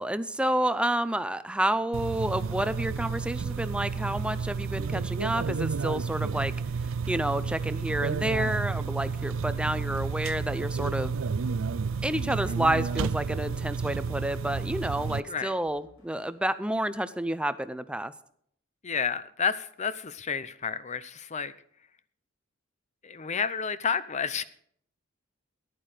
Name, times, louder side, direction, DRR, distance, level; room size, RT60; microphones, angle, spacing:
voice 1, 0.0-6.5 7.1-11.1 12.0-18.1, right 1 dB, 5° right, 13 dB, 0.6 m, -29 dB
sound 1, 1.9-15.2, right 5 dB, 70° right, 0.5 m, -31 dB
sound 2, 4.4-16.4, left 1 dB, 80° left, 5.3 m, -59 dB
voice 2, 18.8-21.5 23.0-24.4, left 6 dB, 35° left, 15 dB, 0.7 m, -30 dB
14.5 x 11.0 x 5.0 m, 0.65 s
head